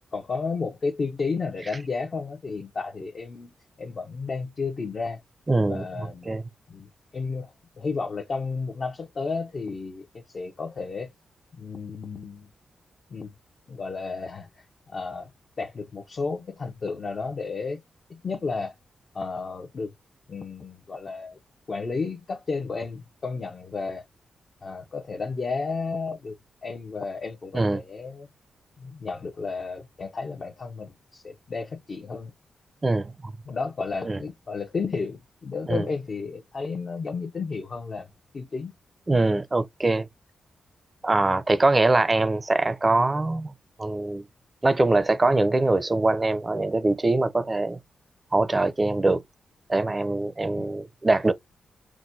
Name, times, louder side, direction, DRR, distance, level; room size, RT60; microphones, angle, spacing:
voice 1, 0.1-5.2 5.7-6.3 6.7-11.1 11.5-12.5 13.1-13.3 13.7-14.5 14.9-15.3 15.6-17.8 18.1-18.7 19.1-19.9 20.3-21.4 21.7-24.0 24.6-26.3 26.6-28.3 28.8-32.3 33.5-38.1 38.3-38.7 50.6-50.7, left 4 dB, 50° left, 0.8 m, -32 dB
voice 2, 5.5-5.9 6.3-6.4 27.5-27.8 32.8-33.3 34.1-34.2 35.7-35.9 39.1-40.1 41.0-43.5 43.8-44.2 44.6-47.8 48.3-49.2 49.7-51.3, right 2 dB, 25° right, 0.6 m, -23 dB
5.9 x 2.2 x 2.6 m
cardioid pair, 75°, 0 cm